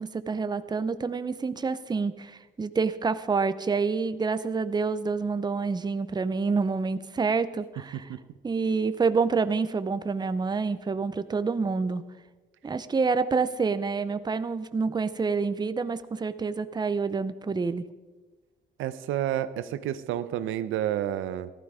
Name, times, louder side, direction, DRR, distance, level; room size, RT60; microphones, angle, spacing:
voice 1, 0.0-8.1 8.4-12.0 12.6-17.9, right 4 dB, 20° right, 13 dB, 0.6 m, -27 dB
voice 2, 18.8-21.5, right 11 dB, 85° right, 13 dB, 0.7 m, -30 dB
15.0 x 12.5 x 4.9 m, 1.3 s
cardioid pair, 90°, 20 cm